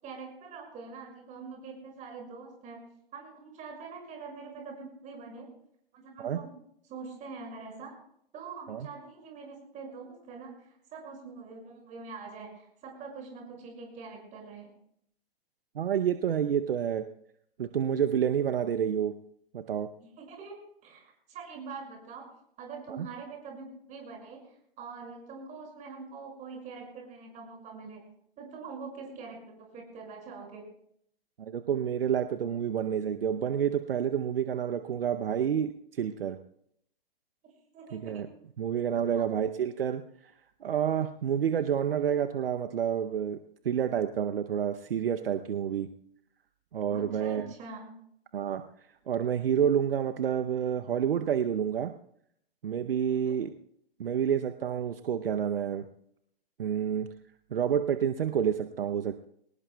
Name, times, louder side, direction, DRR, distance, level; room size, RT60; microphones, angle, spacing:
voice 1, 0.0-2.9 3.1-5.5 5.9-6.5 6.9-7.9 8.3-14.7 20.0-22.3 22.6-28.0 28.4-30.7 37.4-38.3 39.1-39.2 46.9-48.0 53.1-53.4, right 4 dB, 25° right, 0 dB, 5.9 m, -44 dB
voice 2, 15.7-17.0 17.6-19.1 19.5-19.9 23.0-23.1 31.4-36.4 37.9-38.3 38.6-40.0 40.6-43.4 43.6-45.9 46.7-47.5 48.3-48.6 49.1-51.9 52.6-53.5 54.0-55.8 56.6-57.1 57.5-59.2, right 8 dB, 70° right, 9 dB, 0.8 m, -29 dB
23.5 x 19.5 x 2.3 m, 0.71 s
figure-of-eight pair, 120°, 30 cm